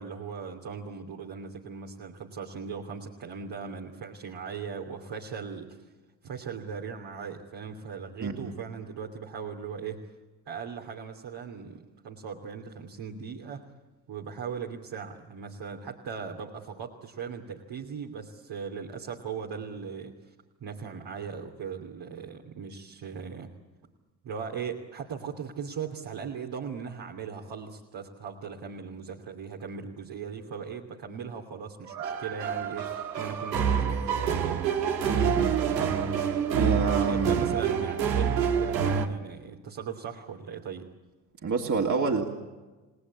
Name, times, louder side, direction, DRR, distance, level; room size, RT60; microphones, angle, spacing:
voice 1, 0.0-5.9 6.2-10.0 10.5-13.6 14.1-20.3 20.6-23.5 24.2-34.6 36.9-40.9, right 6 dB, 55° right, 0 dB, 2.9 m, -38 dB
voice 2, 8.2-8.5 35.1-35.6 36.5-37.4 41.4-42.3, right 4 dB, 35° right, 0 dB, 2.9 m, -28 dB
sound 1, 31.9-39.1, right 7 dB, 90° right, 1.8 m, -27 dB
29.5 x 19.0 x 8.7 m, 1.2 s
hypercardioid pair, 60°, 50 cm